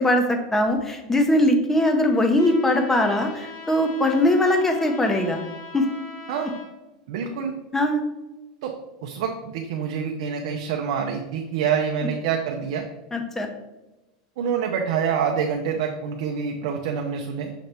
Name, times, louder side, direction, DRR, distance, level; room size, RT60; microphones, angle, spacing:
voice 1, 0.0-5.4 5.7-5.8 7.7-8.0 13.1-13.5, left 1 dB, 10° left, 5 dB, 0.6 m, -21 dB
Trumpet, 2.4-6.7, left 4 dB, 45° left, 1.2 m, -41 dB
voice 2, 7.1-7.5 8.6-8.7 9.0-12.9 14.4-17.5, right 7 dB, 70° right, 2 dB, 0.5 m, -26 dB
5.8 x 2.7 x 3.3 m, 1.0 s
supercardioid pair, 140°, 3 cm